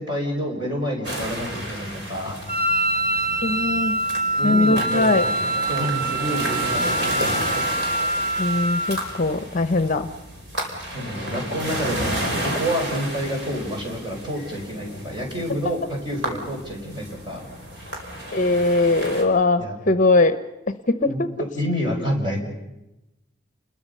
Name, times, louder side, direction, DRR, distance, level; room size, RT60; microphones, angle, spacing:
voice 1, 0.0-2.4 4.4-5.3 5.7-7.3 10.9-17.4 19.6-19.8 21.1-21.2 21.6-22.4, equal, 25° right, 0 dB, 5.4 m, -28 dB
sound 1, 1.0-19.2, right 1 dB, 65° right, 5.0 m, -32 dB
Wind instrument woodwind instrument, 2.5-9.1, right 2 dB, 45° right, 4.2 m, -24 dB
voice 2, 3.4-4.0 4.4-5.3 8.4-10.1 18.3-20.4 20.7-21.3, left 2 dB, 45° left, 12 dB, 0.9 m, -20 dB
29.5 x 21.5 x 5.6 m, 0.98 s
head